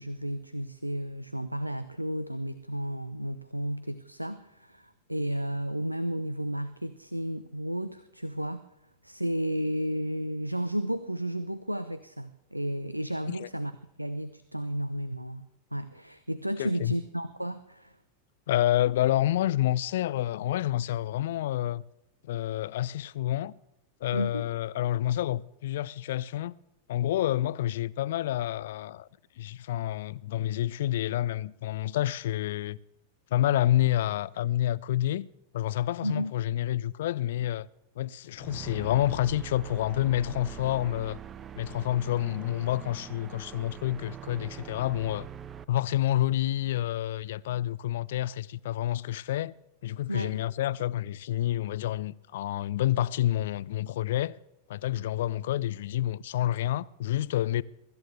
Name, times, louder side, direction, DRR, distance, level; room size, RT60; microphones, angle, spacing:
voice 1, 0.0-8.6 9.0-13.7 14.0-17.9 24.1-24.4 36.0-36.3 50.1-50.4, equal, 90° right, 0.6 m, -33 dB
voice 2, 16.6-16.9 18.5-21.8 22.3-23.5 24.0-26.6 26.9-29.1 29.4-32.8 33.3-35.3 35.5-37.7 38.0-41.2 41.6-45.3 45.7-49.5 49.8-54.4 54.7-57.6, left 13 dB, 55° left, 0.4 m, -28 dB
sound 1, 38.4-45.6, right 9 dB, 25° right, 0.6 m, -43 dB
23.5 x 13.5 x 3.3 m
figure-of-eight pair, 90°, 0 cm